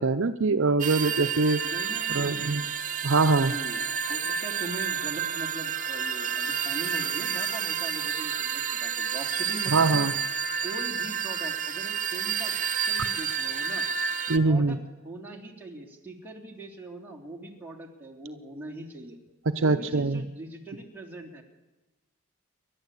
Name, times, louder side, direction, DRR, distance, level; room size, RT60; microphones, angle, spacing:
voice 1, 0.0-1.6 2.1-2.6 3.0-3.5 9.7-10.1 14.3-14.8 19.6-20.2, right 3 dB, 60° right, 8 dB, 0.7 m, -23 dB
sound 1, 0.8-14.4, right 7 dB, 35° right, 1.1 m, -30 dB
voice 2, 1.6-2.6 3.4-3.8 4.1-10.0 10.6-13.9 14.4-14.8 15.0-19.2 19.6-21.4, right 2 dB, 10° right, -1 dB, 3.2 m, -41 dB
29.0 x 12.0 x 8.3 m, 1.1 s
head